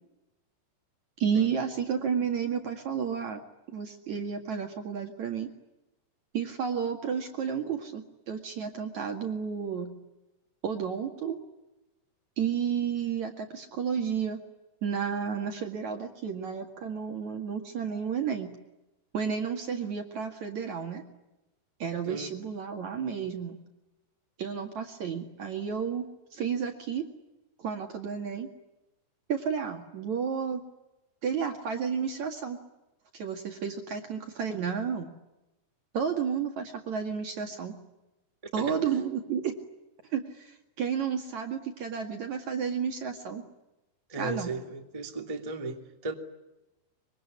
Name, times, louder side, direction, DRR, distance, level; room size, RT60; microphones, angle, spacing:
voice 1, 1.2-3.4 3.7-5.5 6.3-9.9 10.6-11.4 12.4-14.4 14.8-18.6 19.1-21.0 21.8-23.6 24.4-26.0 26.3-27.1 27.6-28.5 29.3-30.6 31.2-32.6 33.1-35.1 35.9-37.8 38.5-39.5 40.1-43.4 44.2-44.5, right 7 dB, 50° right, 2.7 m, -31 dB
voice 2, 44.1-46.1, right 2 dB, 10° right, 1.8 m, -36 dB
25.0 x 24.0 x 9.8 m
omnidirectional pair, 5.1 m